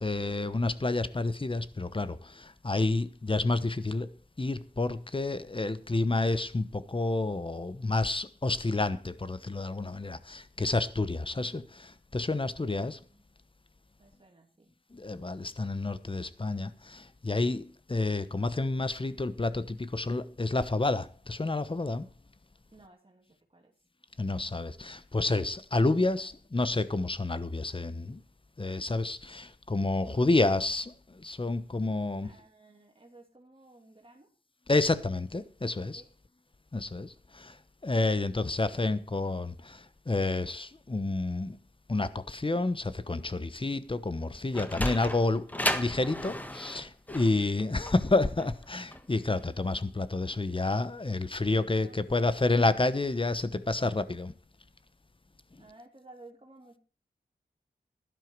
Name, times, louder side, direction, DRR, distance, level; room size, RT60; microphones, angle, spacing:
voice 1, 0.0-2.2 2.6-4.1 4.4-11.6 12.1-13.0 15.0-16.7 17.2-17.6 17.9-22.0 24.2-28.2 28.6-30.9 31.2-32.3 34.7-36.0 36.7-37.1 37.8-39.5 40.1-41.6 41.9-54.3, left 2 dB, 30° left, 1.1 m, -29 dB
voice 2, 12.8-13.2 14.0-14.7 22.7-23.7 26.1-26.3 30.0-30.2 32.2-34.3 35.9-36.1 51.7-52.4 55.6-56.8, right 2 dB, 35° right, 3.0 m, -55 dB
Sliding door, 44.2-49.4, left 1 dB, 10° left, 1.6 m, -34 dB
12.5 x 11.5 x 4.7 m
cardioid pair, 55°, 17 cm